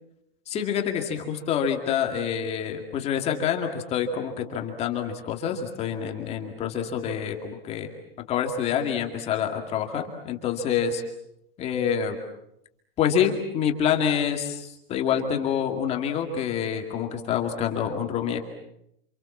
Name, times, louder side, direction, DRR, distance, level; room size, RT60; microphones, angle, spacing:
voice 1, 0.5-7.9 8.3-11.0 11.6-12.2 13.0-18.4, left 8 dB, 20° left, 3 dB, 2.2 m, -27 dB
28.0 x 27.5 x 7.3 m, 0.79 s
supercardioid pair, 165°, 31 cm